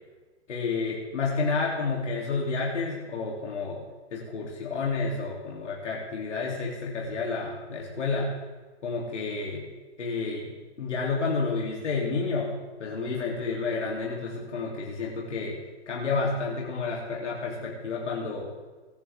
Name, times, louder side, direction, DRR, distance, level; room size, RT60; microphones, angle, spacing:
voice 1, 0.5-3.8 4.1-8.3 8.8-9.6 10.0-10.5 10.8-12.5 12.8-15.6 15.9-18.5, left 4 dB, 85° left, -3 dB, 3.6 m, -30 dB
24.5 x 11.0 x 3.8 m, 1.3 s
hypercardioid pair, 140°, 35 cm